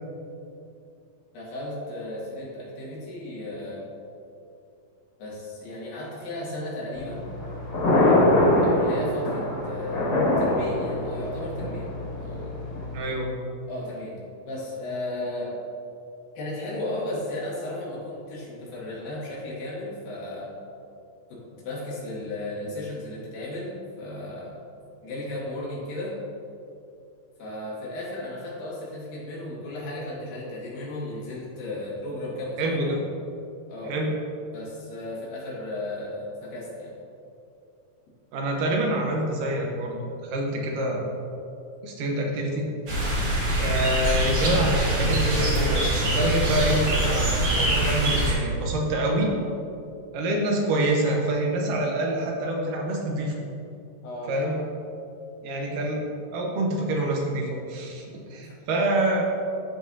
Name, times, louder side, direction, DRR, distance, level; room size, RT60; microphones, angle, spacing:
voice 1, 1.3-3.8 5.2-7.3 8.6-10.1 10.4-11.9 12.2-12.5 13.7-14.2 14.5-15.6 16.4-20.5 21.3-24.5 25.0-26.2 27.4-33.0 33.7-34.0 34.5-37.0 54.0-54.6 58.4-58.5, left 1 dB, 85° left, -6 dB, 3.6 m, -35 dB
Thunder, 7.0-13.0, left 1 dB, 50° left, 2.6 m, -23 dB
voice 2, 12.9-13.3 32.6-33.0 33.9-34.1 38.3-41.1 41.8-42.7 43.6-49.3 50.1-53.4 54.3-54.6 55.4-56.1 56.3-59.2, right 1 dB, 75° right, 0 dB, 2.5 m, -26 dB
sound 1, 42.9-48.3, right 1 dB, 45° right, 1.4 m, -24 dB
13.0 x 5.1 x 2.7 m, 2.6 s
omnidirectional pair, 3.9 m